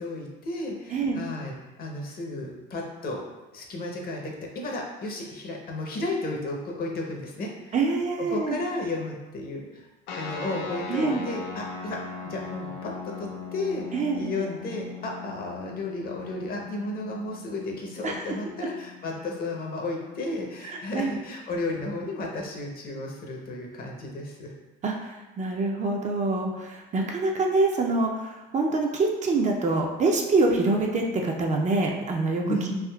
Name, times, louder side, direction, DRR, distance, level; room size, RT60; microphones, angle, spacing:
voice 1, 0.0-3.2 3.5-7.7 8.2-9.9 10.2-12.0 12.2-24.5 32.5-32.8, left 2 dB, 45° left, 0 dB, 0.7 m, -33 dB
voice 2, 0.9-1.2 7.7-8.6 10.9-11.2 13.9-14.2 18.0-18.2 20.6-21.2 24.8-32.4, right 3 dB, 35° right, 1 dB, 0.4 m, -25 dB
sound 1, 10.1-21.0, left 5 dB, 85° left, 0.5 m, -40 dB
3.5 x 2.4 x 2.3 m, 1.1 s
supercardioid pair, 80°, 21 cm